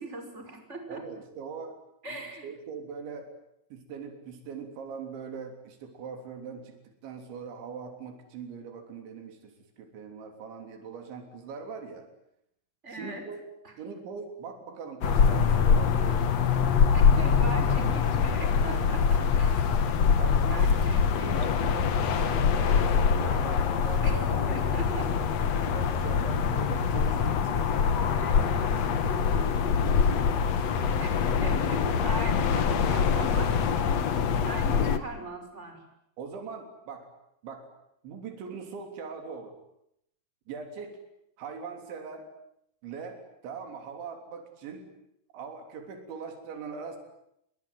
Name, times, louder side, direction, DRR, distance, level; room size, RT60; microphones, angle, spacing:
voice 1, 0.0-1.1 2.0-2.5 12.8-13.3 13.6-13.7 16.9-19.7 20.5-21.6 24.0-25.2 28.2-28.9 31.0-34.0 34.4-35.8, right 3 dB, 15° right, 5 dB, 5.8 m, -40 dB
voice 2, 0.9-1.8 2.1-3.3 3.7-6.8 7.0-12.1 12.9-13.4 13.8-16.3 17.4-17.5 20.2-20.8 21.3-24.5 25.1-27.7 36.2-37.1 37.4-37.7 38.0-39.6 40.5-41.0 41.4-42.3 42.8-44.9 45.3-47.0, right 5 dB, 90° right, 6 dB, 5.7 m, -41 dB
sound 1, 15.0-35.0, left 6 dB, 55° left, 2.0 m, -24 dB
27.5 x 22.5 x 9.5 m, 0.77 s
omnidirectional pair, 5.1 m